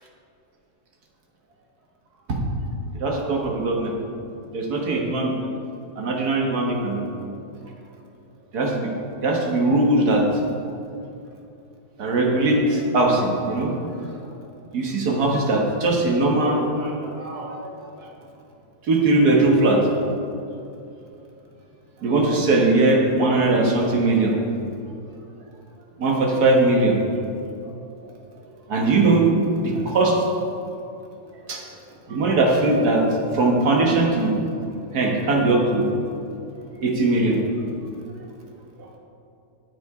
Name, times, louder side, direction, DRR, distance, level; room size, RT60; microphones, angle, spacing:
voice 1, 3.0-3.9 4.5-5.3 6.0-7.0 8.5-8.9 9.2-10.3 12.0-13.7 14.7-17.7 18.0-18.1 18.9-19.8 22.0-24.3 26.0-27.0 28.7-29.3 29.6-30.2 31.5-31.6 32.1-33.1 33.3-34.4 34.9-35.9 36.8-37.4, right 2 dB, 60° right, 0 dB, 1.9 m, -20 dB
10.0 x 8.7 x 4.9 m, 2.6 s
omnidirectional pair, 2.0 m